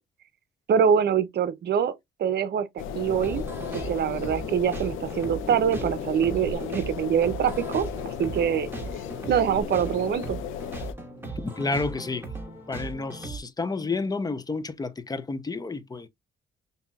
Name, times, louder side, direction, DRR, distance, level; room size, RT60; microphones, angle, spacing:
voice 1, 0.7-1.9 2.2-2.7 2.9-3.4 3.7-8.7 9.3-10.4, right 8 dB, 55° right, 0.7 m, -24 dB
sound 1, 2.8-10.9, left 8 dB, 90° left, 0.6 m, -35 dB
sound 2, 3.1-13.4, right 2 dB, 10° right, 1.4 m, -38 dB
voice 2, 11.4-12.3 12.7-16.1, left 3 dB, 20° left, 0.6 m, -30 dB
5.4 x 2.7 x 2.3 m
cardioid pair, 90°, 20 cm